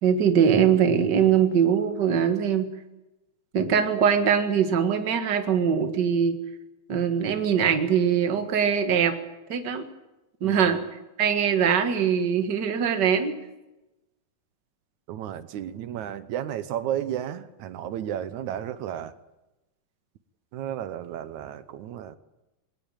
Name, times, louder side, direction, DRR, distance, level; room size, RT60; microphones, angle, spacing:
voice 1, 0.0-2.7 3.5-6.4 6.9-9.2 9.5-9.8 10.4-13.4, right 7 dB, 40° right, 7 dB, 1.7 m, -22 dB
voice 2, 10.4-10.8 15.1-19.1 20.5-22.2, right 10 dB, 70° right, 13 dB, 2.1 m, -33 dB
21.0 x 18.5 x 8.9 m, 0.99 s
omnidirectional pair, 4.0 m